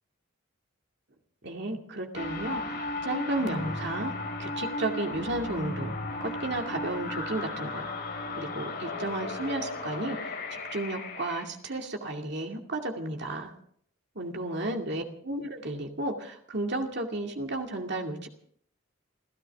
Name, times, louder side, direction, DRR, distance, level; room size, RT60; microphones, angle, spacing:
voice 1, 1.4-4.1 4.4-6.0 6.2-7.9 8.3-13.5 14.2-18.3, right 2 dB, 55° right, 2 dB, 2.4 m, -33 dB
sound 1, 2.1-11.4, left 2 dB, 50° left, 4.6 m, -35 dB
29.5 x 13.5 x 3.6 m, 0.63 s
head